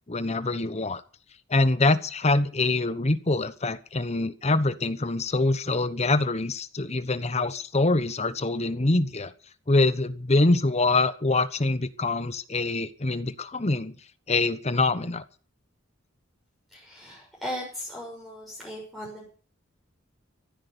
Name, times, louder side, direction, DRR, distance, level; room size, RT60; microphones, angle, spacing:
voice 1, 0.1-1.0 1.5-9.3 9.7-14.0 14.3-15.2, left 2 dB, 35° left, 14 dB, 1.0 m, -24 dB
voice 2, 16.7-19.2, equal, ahead, -4 dB, 6.7 m, -37 dB
14.5 x 12.5 x 6.9 m, 0.40 s
head